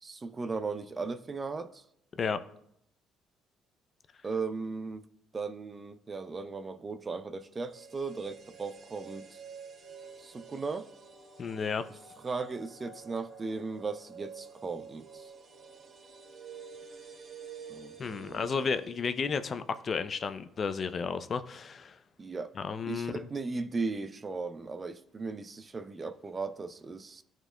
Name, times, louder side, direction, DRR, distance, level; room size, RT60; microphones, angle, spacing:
voice 1, 0.0-1.8 4.2-5.1 5.3-9.4 10.2-10.9 12.2-15.3 17.7-18.7 22.2-22.5 22.9-27.2, right 4 dB, 35° right, 0.5 m, -37 dB
sound 1, 7.6-19.7 20.0-20.1, right 5 dB, 55° right, 2.5 m, -49 dB
voice 2, 11.4-11.8 18.0-22.0 22.6-23.2, left 5 dB, 45° left, 0.5 m, -32 dB
12.5 x 4.5 x 2.2 m
hypercardioid pair, 55°, 0 cm